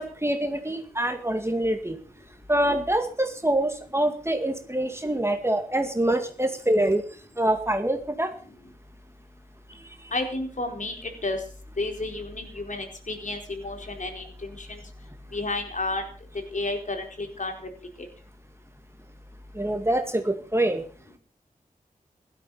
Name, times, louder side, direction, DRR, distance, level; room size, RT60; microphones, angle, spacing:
voice 1, 0.0-2.0 2.5-7.0 7.4-8.3 10.0-10.1 19.5-20.8, right 1 dB, 15° right, 6 dB, 2.2 m, -25 dB
voice 2, 10.1-11.4 11.8-14.8 15.3-16.0 16.5-17.5, left 2 dB, 60° left, 4 dB, 4.5 m, -31 dB
16.0 x 12.5 x 5.7 m, 0.40 s
wide cardioid pair, 60°, 15 cm